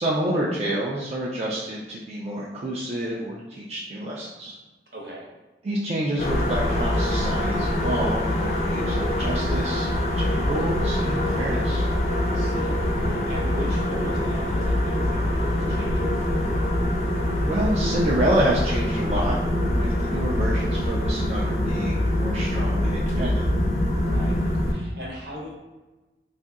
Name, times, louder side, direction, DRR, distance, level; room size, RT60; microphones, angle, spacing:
voice 1, 0.0-4.6 5.6-9.9 10.2-11.9 17.4-19.4 19.7-23.4, right 1 dB, 35° right, -6 dB, 0.4 m, -28 dB
voice 2, 4.9-5.3 12.2-16.2 23.9-25.5, right 1 dB, 60° right, -4 dB, 1.0 m, -39 dB
sound 1, 6.2-24.7, left 1 dB, 35° left, 0.5 m, -24 dB
4.0 x 2.6 x 2.4 m, 1.1 s
head